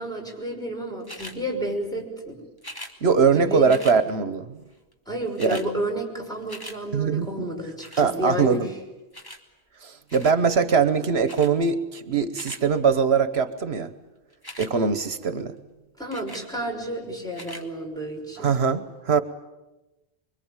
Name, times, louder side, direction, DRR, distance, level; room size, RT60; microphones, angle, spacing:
voice 1, 0.0-2.4 3.3-3.7 5.1-8.6 16.0-18.5, equal, 5° left, 0 dB, 6.1 m, -31 dB
sound 1, 1.0-1.4 2.6-2.9 3.7-4.0 4.9-5.0 5.2-5.7 6.1-6.8 7.8-8.1 9.1-9.4 10.1-10.4 11.3-11.5 12.1-12.6 14.3-14.7 16.1-16.5 17.3-17.6 18.3-18.4, left 1 dB, 20° left, 2.4 m, -40 dB
voice 2, 3.0-4.6 5.4-5.6 6.9-7.5 8.0-8.7 9.8-13.9 14.6-15.5 18.4-19.2, right 5 dB, 80° right, 11 dB, 1.4 m, -22 dB
25.0 x 24.0 x 8.9 m, 1.0 s
omnidirectional pair, 1.1 m